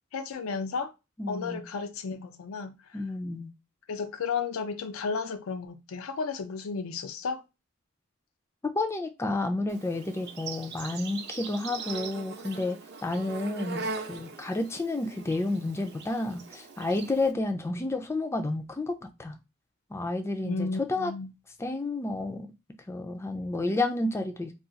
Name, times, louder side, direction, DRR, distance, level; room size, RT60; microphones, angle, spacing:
voice 1, 0.1-0.9 1.3-3.0 3.9-7.4 20.4-21.3, left 5 dB, 90° left, 0.4 m, -33 dB
voice 2, 1.2-1.6 2.9-3.5 8.7-19.3 19.9-21.1 21.6-22.5 22.9-24.6, left 2 dB, 15° left, 0.3 m, -31 dB
Insect, 9.7-17.3, right 4 dB, 50° right, 0.6 m, -41 dB
2.4 x 2.3 x 3.9 m
head